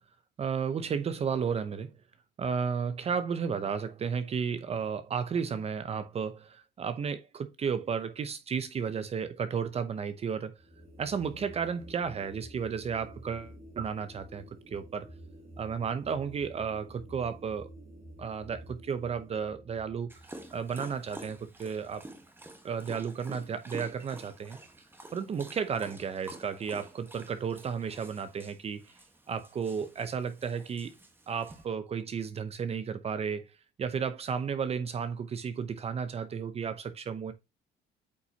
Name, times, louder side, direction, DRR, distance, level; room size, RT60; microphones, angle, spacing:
voice 1, 0.4-1.9 2.4-10.6 11.0-15.1 15.6-17.7 18.2-22.1 22.6-24.6 25.1-28.8 29.3-30.9 31.3-33.5 33.8-37.3, right 6 dB, 35° right, 0.7 m, -33 dB
sound 1, 10.5-21.9, equal, 65° right, 3.2 m, -50 dB
Dog, 20.1-31.6, right 1 dB, 10° right, 1.3 m, -49 dB
8.5 x 4.4 x 2.8 m
cardioid pair, 110°, 17 cm